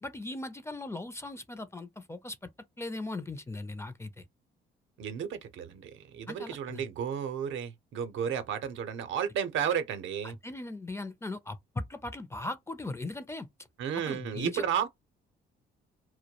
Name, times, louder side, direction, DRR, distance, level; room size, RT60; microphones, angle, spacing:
voice 1, 0.0-2.4 2.8-4.2 6.3-6.9 10.2-13.5 14.1-14.7, left 2 dB, 15° left, 0.4 m, -39 dB
voice 2, 5.0-10.4 13.8-14.9, right 8 dB, 75° right, 0.6 m, -33 dB
2.2 x 2.1 x 2.8 m
cardioid pair, 90°, 20 cm